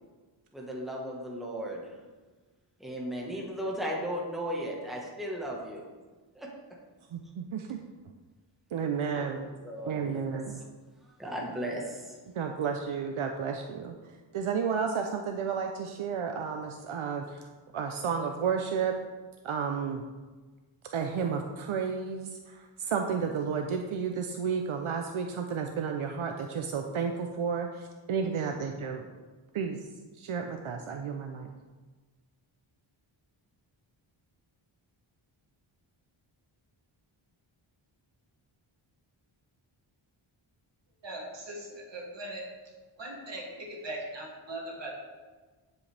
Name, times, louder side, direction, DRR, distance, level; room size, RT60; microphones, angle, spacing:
voice 1, 0.5-1.9 2.8-5.8 6.3-6.5 9.1-9.3 9.6-10.6 11.1-12.2, equal, ahead, -3 dB, 1.3 m, -36 dB
voice 2, 7.1-7.8 8.7-9.5 9.9-10.6 12.3-14.0 14.3-17.5 17.7-19.0 19.4-20.0 20.9-29.1 29.5-29.9 30.2-31.5, right 6 dB, 75° right, 4 dB, 0.7 m, -32 dB
voice 3, 41.0-42.4 43.0-44.9, right 1 dB, 60° right, -3 dB, 2.5 m, -40 dB
9.7 x 8.0 x 3.4 m, 1.3 s
wide cardioid pair, 175°, 50 cm